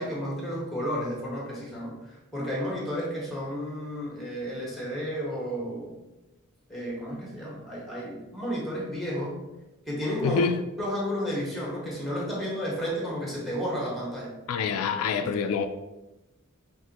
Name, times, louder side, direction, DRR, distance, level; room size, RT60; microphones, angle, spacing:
voice 1, 0.0-5.9 6.7-9.3 9.9-10.5 10.8-14.3 15.2-15.3, equal, ahead, -4 dB, 1.3 m, -32 dB
voice 2, 10.2-10.6 14.5-15.7, left 6 dB, 85° left, 8 dB, 0.3 m, -26 dB
5.8 x 2.6 x 2.9 m, 1.0 s
head